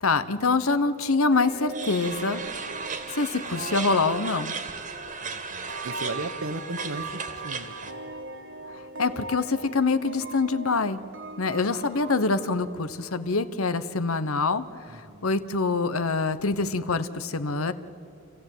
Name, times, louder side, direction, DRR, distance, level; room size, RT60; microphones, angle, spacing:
voice 1, 0.0-2.4 3.1-4.5 9.0-11.0 11.4-14.6 14.9-17.7, left 3 dB, 85° left, 11 dB, 1.1 m, -25 dB
sound 1, 1.3-13.7, right 3 dB, 60° right, 1.6 m, -41 dB
sound 2, 1.7-7.9, right 5 dB, 35° right, 1.7 m, -36 dB
voice 2, 5.2-7.9 14.9-15.3, right 2 dB, 80° right, 10 dB, 1.4 m, -36 dB
27.5 x 15.0 x 9.2 m, 2.7 s
head